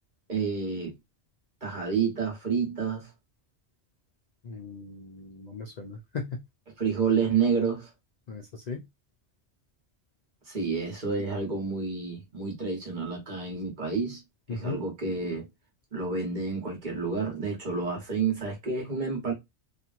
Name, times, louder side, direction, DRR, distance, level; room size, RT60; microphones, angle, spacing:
voice 1, 0.3-0.9 1.6-3.1 6.8-7.9 10.5-14.2 14.5-15.5 15.9-19.3, right 5 dB, 45° right, 1.2 m, -29 dB
voice 2, 4.4-6.4 8.3-8.8 14.5-14.8, left 4 dB, 60° left, 0.4 m, -37 dB
2.9 x 2.4 x 2.4 m
omnidirectional pair, 1.1 m